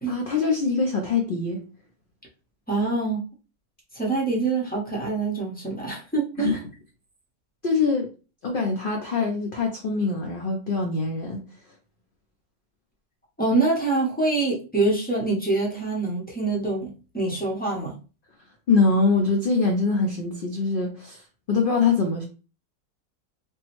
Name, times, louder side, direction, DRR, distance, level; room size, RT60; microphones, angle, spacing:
voice 1, 0.1-1.6 6.4-6.6 7.6-8.1 8.4-11.4 18.7-21.2 21.5-22.2, left 4 dB, 85° left, 1 dB, 0.4 m, -23 dB
voice 2, 2.7-3.2 3.9-6.6 13.4-18.0, right 3 dB, 10° left, -4 dB, 0.4 m, -25 dB
3.6 x 2.0 x 2.9 m, 0.34 s
omnidirectional pair, 1.6 m